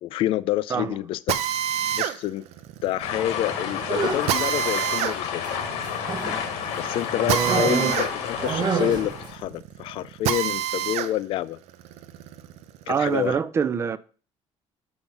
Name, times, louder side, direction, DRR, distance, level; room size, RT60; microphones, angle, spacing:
voice 1, 0.0-1.4 2.0-2.4 2.8-5.4 6.8-11.6 12.9-13.4, left 13 dB, 55° left, 0.4 m, -28 dB
Drill, 1.3-11.1 11.6-13.2, right 10 dB, 75° right, 0.7 m, -29 dB
sound 1, 3.0-9.4, left 7 dB, 80° left, 1.4 m, -30 dB
sound 2, 3.8-4.4 5.4-6.5 7.4-9.3, right 5 dB, 40° right, 1.0 m, -27 dB
voice 2, 7.2-7.7 12.9-14.0, right 6 dB, 25° right, 0.4 m, -25 dB
7.0 x 5.9 x 5.2 m
cardioid pair, 170°, 11 cm